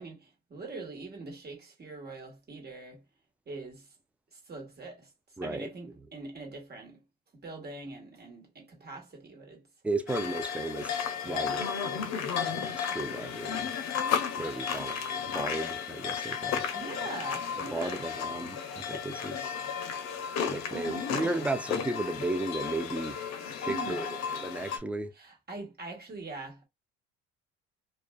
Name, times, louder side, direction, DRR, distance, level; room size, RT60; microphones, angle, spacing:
voice 1, 0.0-3.0 3.5-3.9 4.3-5.1 5.4-7.0 7.3-9.6 11.2-11.5 14.4-14.9 16.7-18.1 18.9-19.0 20.7-21.6 23.6-24.0 25.2-26.7, right 3 dB, 30° right, 1.3 m, -43 dB
voice 2, 5.4-5.7 9.8-12.1 12.4-13.7 14.4-14.9 15.3-16.7 17.6-19.5 20.5-23.2 23.6-25.1, right 2 dB, 5° right, 0.4 m, -35 dB
sound 1, 10.1-24.8, left 7 dB, 60° left, 0.7 m, -34 dB
2.4 x 2.3 x 2.2 m
hypercardioid pair, 70°, 31 cm